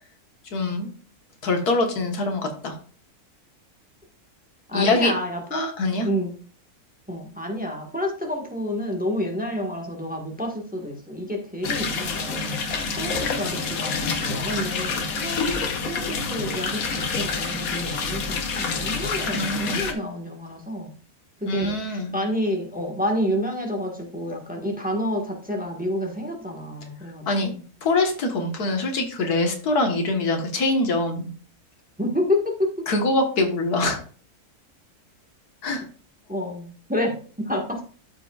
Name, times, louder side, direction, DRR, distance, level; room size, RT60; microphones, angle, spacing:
voice 1, 0.5-0.9 1.4-2.8 4.7-5.1 5.5-6.1 19.3-19.8 21.5-22.2 27.3-27.5 27.8-31.3 32.9-34.0 35.6-35.8, left 2 dB, 85° left, 4 dB, 1.9 m, -24 dB
voice 2, 4.7-5.7 6.0-6.3 7.1-20.9 21.4-27.3 27.5-27.6 32.0-32.9 36.3-37.8, equal, 5° right, 1 dB, 1.3 m, -29 dB
sound 1, 11.6-19.9, left 4 dB, 70° left, 1.5 m, -27 dB
13.0 x 5.3 x 2.4 m, 0.41 s
omnidirectional pair, 1.6 m